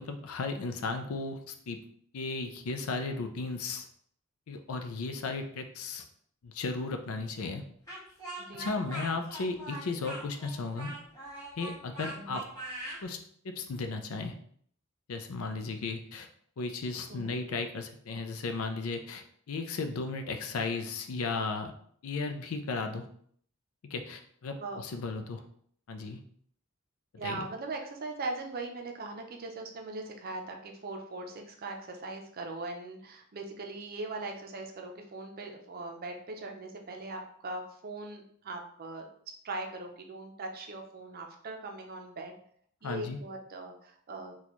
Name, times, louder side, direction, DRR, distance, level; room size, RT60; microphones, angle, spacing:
voice 1, 0.0-1.8 2.1-3.9 4.5-6.1 6.4-7.6 8.5-10.9 11.6-12.5 13.0-13.2 13.4-14.3 15.1-16.3 16.6-21.7 22.0-23.0 23.9-25.4 25.9-26.2 27.2-27.4 42.8-43.2, left 3 dB, 75° left, 6 dB, 0.5 m, -35 dB
Speech, 7.9-13.0, right 1 dB, 15° left, 1.4 m, -41 dB
voice 2, 8.4-8.9 12.1-12.4 17.1-17.4 24.6-24.8 27.2-39.1 39.4-42.4 42.8-44.3, right 2 dB, 45° right, 3 dB, 0.5 m, -40 dB
4.1 x 2.3 x 3.0 m, 0.63 s
head